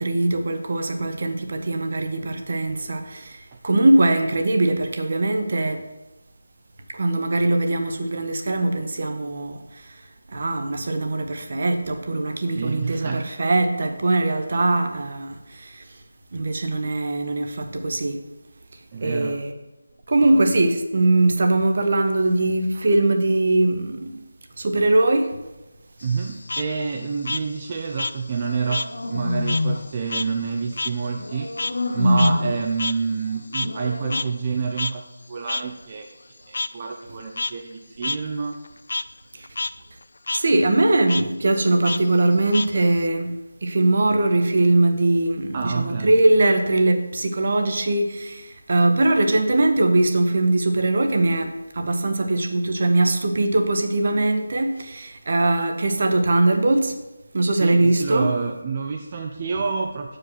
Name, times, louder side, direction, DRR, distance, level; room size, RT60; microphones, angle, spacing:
voice 1, 0.0-5.8 6.9-10.0 10.3-15.8 16.3-18.2 19.0-19.5 20.1-24.2 24.6-25.4 39.3-39.5 40.3-57.0 57.3-58.4, right 2 dB, 50° right, 0.9 m, -21 dB
voice 2, 12.5-13.3 18.9-19.4 20.2-20.4 26.0-31.5 31.9-35.0 35.3-36.2 36.5-38.6 45.5-46.2 57.5-60.2, right 5 dB, 30° right, 0.5 m, -28 dB
Frog, 26.0-28.9 29.2-33.9 34.1-34.2 34.8-34.9 35.5-35.6 36.5-36.7 37.2-37.5 38.0-38.2 38.5-39.0 39.4-39.7 40.0-40.4 41.1-41.2 41.8-43.1, left 3 dB, 60° left, 0.3 m, -29 dB
sound 1, 28.3-29.9 31.2-32.7 33.6-34.2, left 1 dB, 80° left, 1.1 m, -25 dB
7.5 x 5.0 x 5.9 m
figure-of-eight pair, 160°, 0 cm